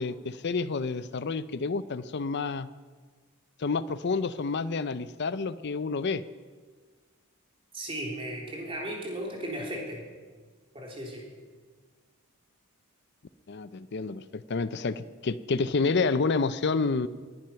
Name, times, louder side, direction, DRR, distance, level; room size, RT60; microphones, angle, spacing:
voice 1, 0.0-2.7 3.6-6.2 13.5-17.1, left 4 dB, 50° left, 14 dB, 0.5 m, -29 dB
voice 2, 7.7-10.0 10.7-11.2, right 1 dB, 25° right, -2 dB, 3.6 m, -36 dB
20.5 x 11.0 x 5.8 m, 1.5 s
head